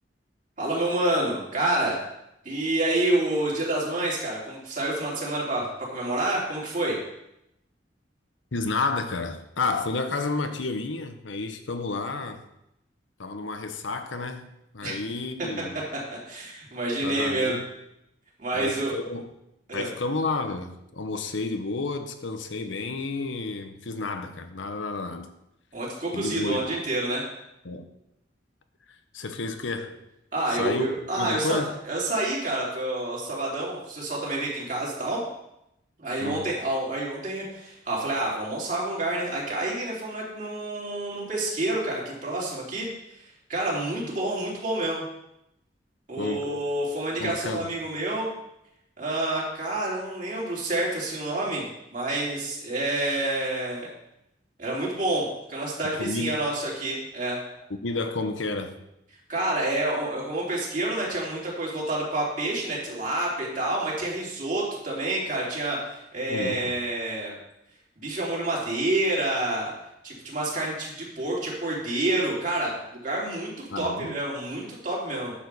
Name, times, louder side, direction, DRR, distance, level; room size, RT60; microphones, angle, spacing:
voice 1, 0.6-2.0 2.4-7.0 14.8-14.9 15.4-15.5 16.3-17.6 18.4-18.9 19.7-19.9 25.7-27.2 30.3-35.2 36.0-42.9 43.1-45.0 46.1-48.3 49.0-51.6 51.9-53.9 54.6-57.4 59.3-67.4 68.0-69.7 70.0-75.3, right 1 dB, 45° right, -4 dB, 3.3 m, -28 dB
voice 2, 8.5-12.4 13.2-14.5 14.7-15.8 17.0-17.6 18.5-19.3 19.7-25.3 26.1-26.7 27.6-27.9 29.1-30.0 30.5-30.9 31.2-31.7 36.2-36.5 46.2-46.4 47.2-47.7 55.8-56.3 57.7-58.7 66.3-66.6 73.7-74.1, left 3 dB, 85° left, 7 dB, 0.9 m, -31 dB
10.0 x 4.9 x 6.8 m, 0.85 s
head